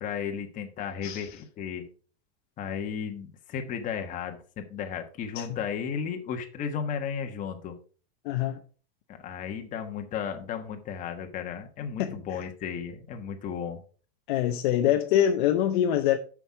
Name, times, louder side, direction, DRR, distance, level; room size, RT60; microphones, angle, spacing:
voice 1, 0.0-1.8 2.6-7.7 9.1-13.8, left 7 dB, 25° left, 1.3 m, -34 dB
voice 2, 8.2-8.6 12.0-12.4 14.3-16.2, left 11 dB, 50° left, 0.8 m, -25 dB
7.8 x 6.2 x 4.7 m
supercardioid pair, 155°, 32 cm